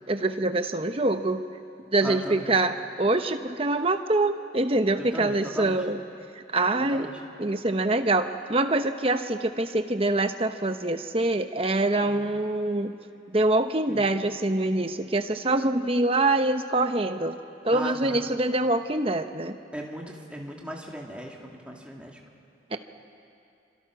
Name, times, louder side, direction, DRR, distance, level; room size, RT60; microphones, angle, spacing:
voice 1, 0.1-1.4 1.9-6.0 6.5-7.1 7.4-12.9 13.3-17.3 17.6-19.6 22.7-22.8, right 2 dB, 30° right, 8 dB, 1.0 m, -25 dB
voice 2, 2.0-2.5 5.0-5.8 6.9-7.2 12.0-12.3 13.9-14.1 17.7-18.2 19.7-22.2, equal, 5° right, -1 dB, 2.5 m, -37 dB
28.0 x 25.5 x 6.2 m, 2.5 s
head